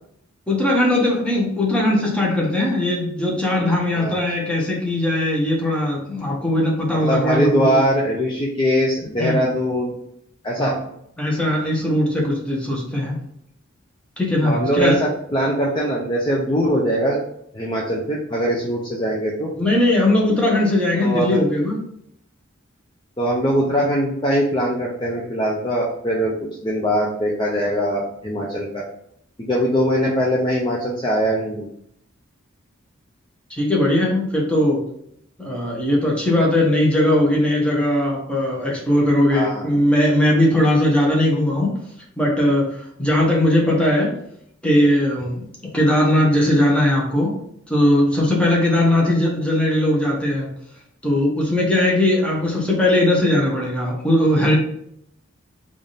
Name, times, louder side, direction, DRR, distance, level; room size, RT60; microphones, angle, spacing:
voice 1, 0.5-7.8 9.2-9.4 10.6-10.8 11.2-13.2 14.2-15.0 19.5-21.8 33.5-34.8 35.4-41.7 42.2-44.1 44.6-45.5 45.7-47.3 47.7-50.5 51.0-54.6, left 1 dB, 5° left, -3 dB, 0.8 m, -19 dB
voice 2, 7.0-9.9 10.4-10.8 14.4-17.2 17.5-19.5 20.9-21.4 23.2-28.8 29.5-31.7 39.3-39.7, equal, 25° left, -3 dB, 0.5 m, -21 dB
3.4 x 2.4 x 3.9 m, 0.70 s
head